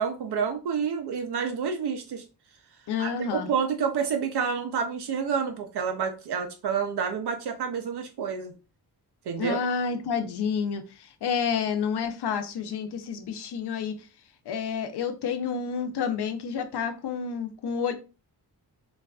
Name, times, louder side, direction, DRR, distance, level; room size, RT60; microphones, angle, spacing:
voice 1, 0.0-2.2 3.0-8.5 9.3-9.6, right 6 dB, 80° right, 0.6 m, -29 dB
voice 2, 2.9-3.5 9.4-14.0 14.5-17.9, left 6 dB, 80° left, 0.5 m, -29 dB
3.9 x 2.3 x 2.2 m
wide cardioid pair, 125°, 39 cm